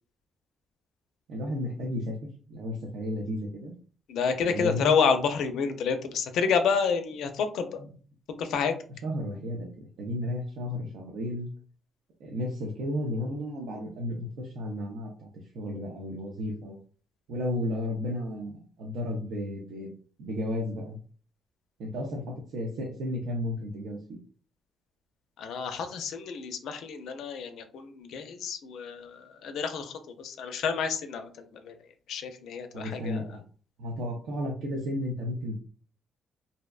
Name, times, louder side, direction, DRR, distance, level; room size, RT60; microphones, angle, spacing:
voice 1, 1.3-2.2 2.5-3.7 4.5-5.0 9.0-11.5 12.2-15.3 15.5-16.8 17.3-19.9 20.2-21.0 21.8-24.2 32.7-33.4 33.8-35.6, left 1 dB, 80° right, -1 dB, 0.5 m, -33 dB
voice 2, 4.1-7.8 8.4-8.7 25.4-31.7 32.1-33.3, left 6 dB, 75° left, 8 dB, 0.4 m, -29 dB
2.6 x 2.1 x 2.3 m, 0.41 s
cardioid pair, 90°, 0 cm